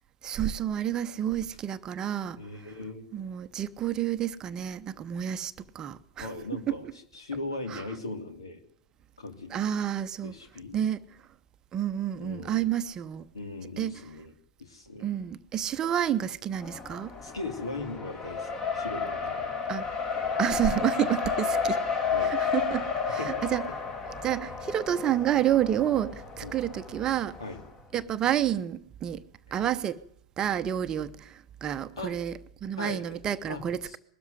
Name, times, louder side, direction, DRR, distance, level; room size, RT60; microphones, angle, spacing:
voice 1, 0.2-2.4 3.1-6.3 6.7-6.8 7.7-7.8 9.5-10.4 10.7-11.0 11.7-13.3 13.8-14.0 15.0-17.1 19.7-19.9 20.4-21.8 22.2-23.6 24.0-27.4 27.9-29.2 29.5-30.0 30.4-34.0, right 10 dB, 25° right, 0.9 m, -29 dB
voice 2, 2.4-3.0 6.2-6.8 7.1-8.6 9.2-9.6 10.2-10.8 12.2-12.7 13.3-14.3 14.6-15.1 17.2-19.4 22.1-22.4 23.1-23.3 26.4-26.6 27.4-27.6 32.0-32.1 32.8-33.2 33.5-34.0, left 3 dB, 70° left, 3.2 m, -38 dB
Race car auto racing, 16.6-27.6, left 5 dB, 20° left, 2.1 m, -32 dB
21.0 x 13.0 x 9.4 m
figure-of-eight pair, 100°, 3 cm